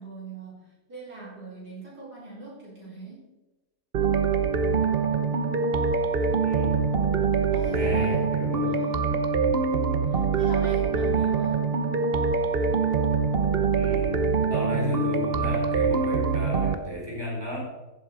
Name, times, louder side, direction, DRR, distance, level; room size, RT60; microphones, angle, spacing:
voice 1, 0.0-3.3 7.5-8.4 8.7-9.2 10.1-11.7, right 2 dB, 80° right, -6 dB, 5.4 m, -42 dB
sound 1, 3.9-16.8, right 5 dB, 45° right, 0.9 m, -24 dB
voice 2, 6.4-6.8 7.7-8.7 13.7-14.2 14.5-17.6, left 1 dB, 15° right, -4 dB, 4.4 m, -33 dB
14.5 x 7.5 x 4.8 m, 1.1 s
omnidirectional pair, 1.7 m